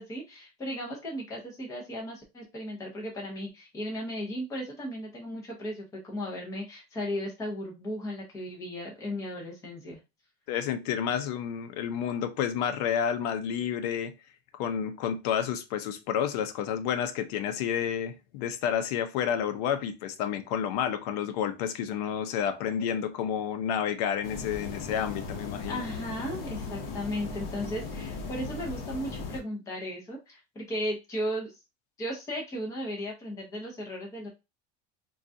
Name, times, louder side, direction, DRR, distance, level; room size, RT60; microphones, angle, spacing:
voice 1, 0.0-10.0 25.7-31.6 32.0-34.3, equal, 15° left, 0.8 m, -36 dB
voice 2, 10.5-14.1 14.6-25.8, left 8 dB, 70° left, 0.6 m, -30 dB
sound 1, 24.2-29.4, left 4 dB, 50° left, 1.0 m, -38 dB
3.7 x 2.3 x 2.6 m
cardioid pair, 160°, 21 cm